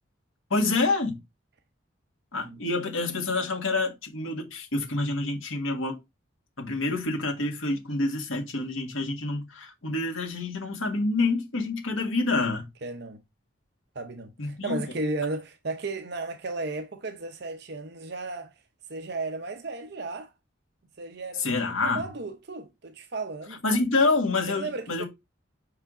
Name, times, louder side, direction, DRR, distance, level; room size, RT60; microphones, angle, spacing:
voice 1, 0.5-1.2 2.3-6.0 6.6-12.7 14.4-14.8 21.4-22.1 23.6-25.0, left 3 dB, 90° left, 1.9 m, -27 dB
voice 2, 12.8-13.2 13.9-18.5 18.9-20.3 21.0-21.5 21.8-23.6 24.5-25.0, right 3 dB, 55° right, 0.7 m, -34 dB
5.7 x 4.9 x 3.7 m
head